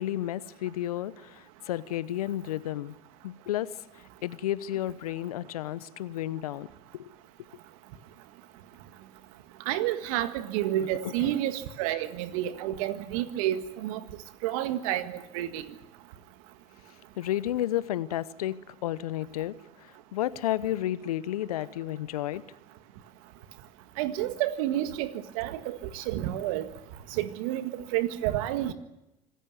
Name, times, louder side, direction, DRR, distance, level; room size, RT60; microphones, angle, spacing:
voice 1, 0.0-2.9 3.2-3.7 4.2-6.7 6.9-7.1 11.2-11.3 17.2-22.4, left 13 dB, 80° left, 18 dB, 0.9 m, -32 dB
voice 2, 9.7-14.0 14.4-15.6 24.0-25.1 25.4-26.7 27.1-28.7, right 13 dB, 70° right, 10 dB, 1.8 m, -30 dB
26.5 x 15.0 x 9.5 m, 0.95 s
hypercardioid pair, 70°, 19 cm